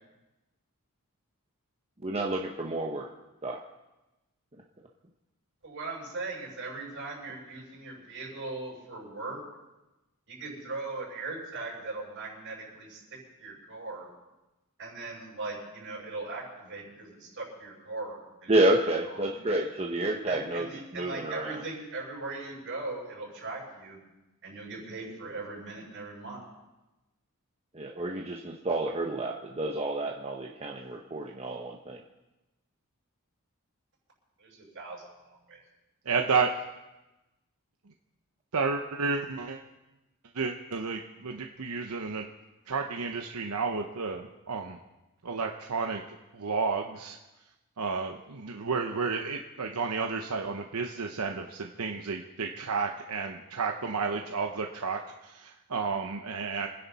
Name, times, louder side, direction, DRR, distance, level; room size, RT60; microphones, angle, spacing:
voice 1, 2.0-3.1 3.4-3.6 18.5-20.7 20.9-21.6 27.7-32.0, right 1 dB, 30° right, 0 dB, 1.0 m, -29 dB
voice 2, 5.6-9.4 10.3-13.0 13.4-14.1 14.8-18.5 18.9-19.3 20.3-24.0 24.4-26.5 34.4-35.6, right 3 dB, 60° right, -3 dB, 6.7 m, -39 dB
voice 3, 36.1-36.5 38.5-39.6 40.3-42.3 42.7-44.8 45.2-46.0 46.3-47.2 47.8-56.7, right 4 dB, 85° right, 3 dB, 0.9 m, -31 dB
25.5 x 10.5 x 4.2 m, 1.0 s
head